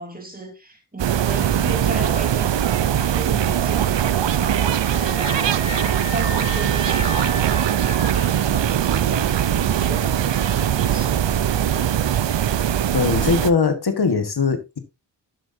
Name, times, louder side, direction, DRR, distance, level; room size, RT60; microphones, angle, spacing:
voice 1, 0.0-7.6 8.1-11.5, right 2 dB, 20° right, 3.1 m, -35 dB
sound 1, 1.0-13.5, right 10 dB, 85° right, 0.7 m, -21 dB
Screaming, 4.8-8.2, left 2 dB, 45° left, 2.6 m, -33 dB
voice 2, 12.9-14.8, left 5 dB, 60° left, 1.5 m, -20 dB
12.5 x 7.9 x 2.6 m
wide cardioid pair, 100°, 42 cm